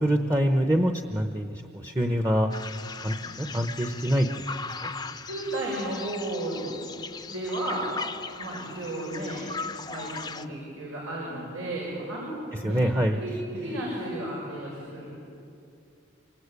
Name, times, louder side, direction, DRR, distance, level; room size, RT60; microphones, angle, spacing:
voice 1, 0.0-2.5 3.0-4.3 4.8-4.9 12.5-13.2, equal, 15° right, 5 dB, 0.9 m, -25 dB
sound 1, 2.5-10.5, left 4 dB, 20° left, 0.6 m, -38 dB
voice 2, 5.3-6.8 7.3-7.9 8.4-9.4 9.8-12.3 12.6-12.8 13.1-15.1, right 1 dB, 90° right, -4 dB, 7.0 m, -33 dB
27.0 x 25.0 x 8.4 m, 2.6 s
head